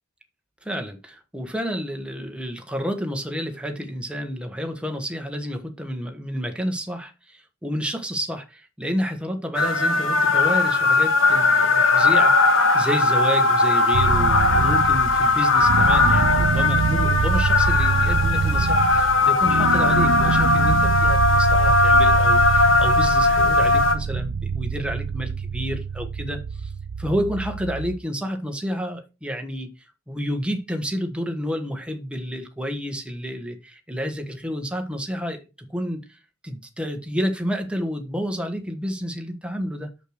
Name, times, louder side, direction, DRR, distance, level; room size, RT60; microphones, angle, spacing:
voice 1, 0.6-26.7 27.0-29.7 30.1-35.4 35.7-39.9, equal, 5° right, 1.3 m, -30 dB
sound 1, 9.5-23.9, left 3 dB, 70° left, 1.6 m, -19 dB
sound 2, 13.9-28.0, right 5 dB, 70° right, 0.4 m, -25 dB
6.6 x 6.3 x 6.3 m
head